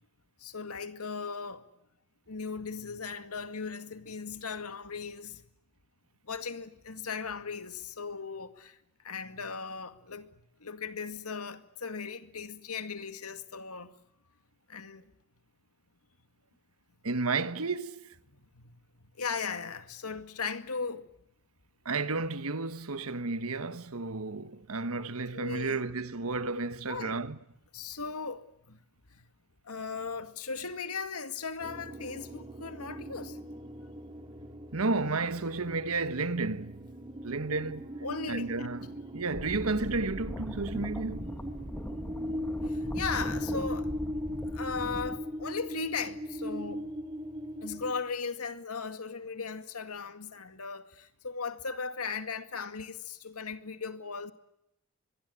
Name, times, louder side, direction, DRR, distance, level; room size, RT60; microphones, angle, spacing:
voice 1, 0.4-1.6 2.3-5.4 6.2-8.8 9.0-13.9 14.7-15.1 18.3-21.1 25.0-25.1 25.3-25.8 26.9-27.2 27.7-28.8 29.1-29.3 29.6-33.4 38.0-38.7 42.4-44.0 44.5-46.9 47.6-54.3, left 5 dB, 90° left, 2.1 m, -38 dB
voice 2, 17.0-18.1 21.8-27.4 34.7-36.9 37.2-37.9 38.3-41.3, right 3 dB, 75° right, 1.3 m, -32 dB
sound 1, 31.6-47.9, equal, 20° right, 2.6 m, -39 dB
sound 2, 39.3-45.2, equal, 10° left, 2.2 m, -40 dB
24.5 x 22.0 x 9.9 m
head